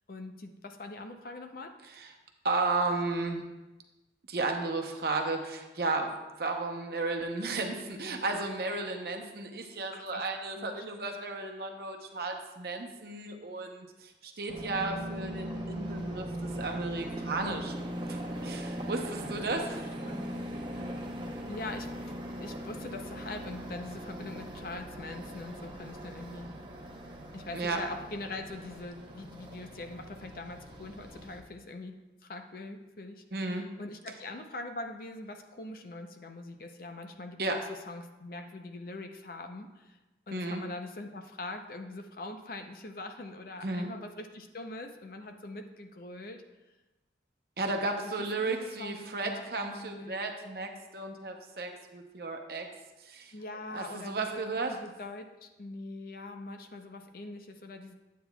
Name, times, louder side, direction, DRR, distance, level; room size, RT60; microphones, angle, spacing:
voice 1, 0.1-1.7 7.8-8.2 9.9-10.3 10.6-11.2 20.0-20.9 21.5-22.1 22.4-26.5 27.3-40.0 40.3-46.4 47.8-50.1 53.3-54.4 54.7-57.9, left 2 dB, 50° left, 5 dB, 0.6 m, -43 dB
voice 2, 2.4-3.5 4.3-18.2 18.4-19.8 27.5-27.8 33.3-33.7 37.4-37.6 40.3-40.6 43.6-43.9 47.6-52.7 53.0-53.3 53.7-54.7, right 3 dB, 55° right, 2 dB, 0.8 m, -34 dB
sound 1, 14.5-31.4, right 1 dB, 25° right, 0.8 m, -40 dB
10.0 x 8.3 x 2.3 m, 1.1 s
head